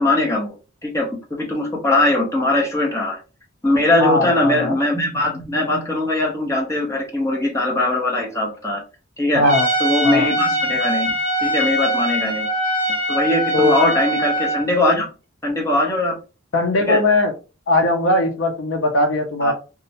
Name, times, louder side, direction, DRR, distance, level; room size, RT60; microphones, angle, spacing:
voice 1, 0.0-3.2 3.6-8.8 9.2-9.4 9.8-12.5 13.1-15.1 15.4-16.1 16.9-17.0 19.4-19.5, left 2 dB, 15° left, -1 dB, 0.6 m, -20 dB
voice 2, 4.0-4.8 9.3-9.7 10.0-10.3 13.5-13.7 16.5-17.3 17.7-19.5, left 2 dB, 65° left, 4 dB, 0.4 m, -19 dB
Trumpet, 9.4-14.7, right 1 dB, 35° right, 0.8 m, -22 dB
2.4 x 2.0 x 2.7 m, 0.33 s
head